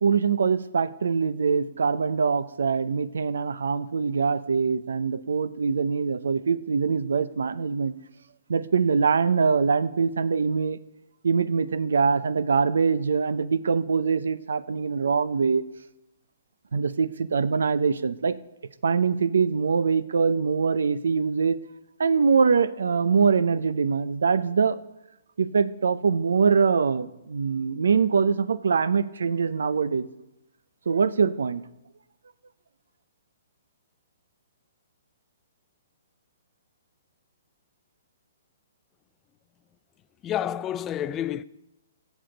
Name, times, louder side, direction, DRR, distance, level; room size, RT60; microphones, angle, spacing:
voice 1, 0.0-7.9 8.5-10.8 11.2-15.6 16.7-18.4 18.8-21.6 22.0-24.8 25.4-30.1 30.9-31.6, right 5 dB, 80° right, 0.5 m, -23 dB
voice 2, 40.2-41.4, left 11 dB, 20° left, 0.3 m, -29 dB
16.5 x 6.2 x 5.2 m
hypercardioid pair, 145°, 0 cm